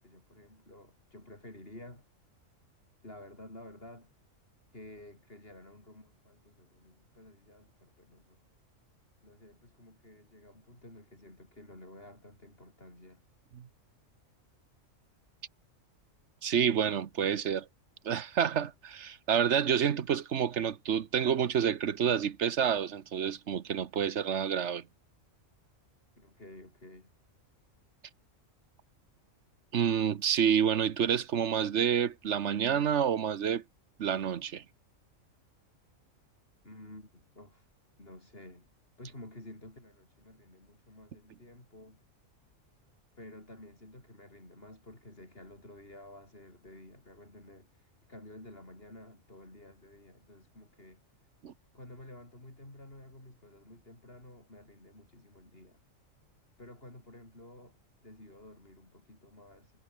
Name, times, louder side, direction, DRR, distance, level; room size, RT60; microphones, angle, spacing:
voice 1, 0.0-2.1 3.0-4.1 4.7-8.4 9.2-13.2 26.2-27.2 36.6-37.7 38.0-38.7 39.0-42.0 43.2-51.0 51.7-55.8 56.6-59.7, left 1 dB, 45° left, 6.3 m, -52 dB
voice 2, 16.4-17.7 18.0-24.8 29.7-33.6 34.0-34.6 51.4-51.5, right 8 dB, 65° right, 1.2 m, -28 dB
omnidirectional pair, 1.4 m